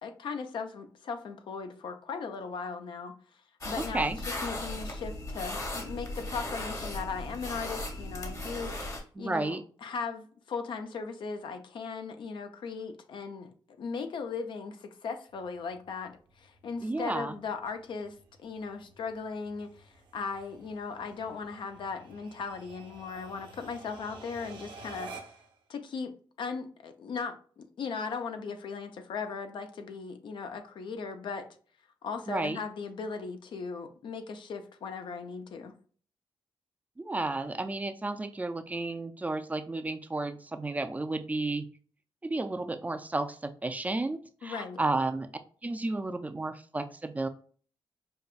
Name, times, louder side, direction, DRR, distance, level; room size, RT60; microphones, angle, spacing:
voice 1, 0.0-3.2 3.6-8.8 9.2-13.5 13.8-25.1 25.7-31.5 32.0-35.7 44.4-44.8, left 5 dB, 70° left, 0.5 m, -38 dB
sound 1, 3.6-9.0, left 1 dB, 40° left, 1.1 m, -37 dB
voice 2, 3.8-4.2 9.2-9.6 16.8-17.3 32.3-32.6 37.0-41.6 42.2-45.3 45.6-47.3, right 2 dB, 20° right, 0.4 m, -32 dB
sound 2, 15.3-25.6, right 3 dB, 80° right, 1.0 m, -51 dB
5.2 x 2.2 x 2.4 m
cardioid pair, 90°, 8 cm